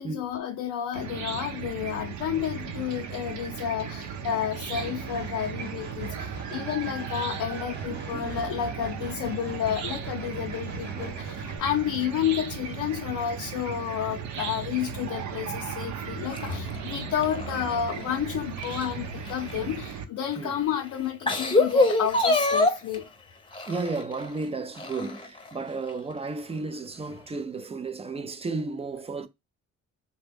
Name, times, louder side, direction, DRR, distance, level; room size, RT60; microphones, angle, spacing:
voice 1, 0.0-23.0 23.6-23.7, left 9 dB, 80° left, 0.6 m, -31 dB
Chicken rooster / Cricket, 0.9-20.0, right 7 dB, 70° right, 0.7 m, -36 dB
sound 1, 4.7-11.6, right 3 dB, 35° right, 1.0 m, -43 dB
voice 2, 7.9-8.4 10.9-11.3 20.4-20.6 23.7-29.3, right 3 dB, 20° right, 0.4 m, -34 dB
sound 2, 16.3-18.2 18.6-19.9 20.5-20.6 21.1-23.0 23.5-24.3 24.8-25.5 25.9-26.0 27.1-27.2, left 2 dB, 15° left, 0.7 m, -25 dB
3.0 x 2.2 x 3.5 m
cardioid pair, 90°, 30 cm